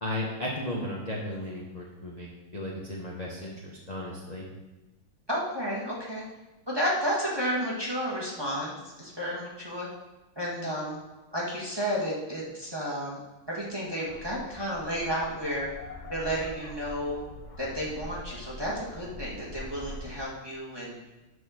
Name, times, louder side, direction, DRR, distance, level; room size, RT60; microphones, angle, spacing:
voice 1, 0.0-4.4, left 1 dB, 25° left, -4 dB, 0.9 m, -35 dB
voice 2, 5.3-6.2 6.7-9.9 10.3-11.0 11.3-13.2 13.5-15.7 16.1-17.2 17.6-21.0, equal, 15° right, -5 dB, 1.3 m, -32 dB
sound 1, 14.1-20.2, left 1 dB, 65° left, 0.4 m, -43 dB
9.7 x 4.3 x 6.3 m, 1.1 s
omnidirectional pair, 2.3 m